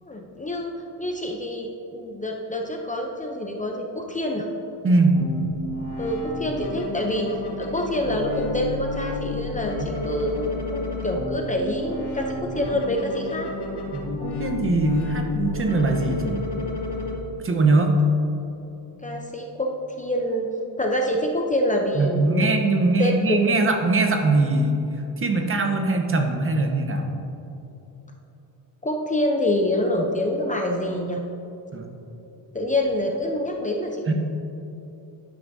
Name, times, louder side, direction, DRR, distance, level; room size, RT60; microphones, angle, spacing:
voice 1, 0.0-4.5 6.0-7.3 7.6-13.5 19.0-19.7 20.0-20.5 20.8-22.5 23.0-23.6 28.8-31.2 32.5-34.1, left 1 dB, 15° left, 1 dB, 0.6 m, -26 dB
voice 2, 4.8-5.2 13.9-16.4 17.4-17.9 22.0-24.8 25.2-27.0 31.7-31.9 34.1-34.2, right 3 dB, 30° right, 3 dB, 0.9 m, -21 dB
sound 1, 5.1-17.2, left 2 dB, 55° left, 1.7 m, -31 dB
12.0 x 9.9 x 2.7 m, 2.9 s
cardioid pair, 155°, 47 cm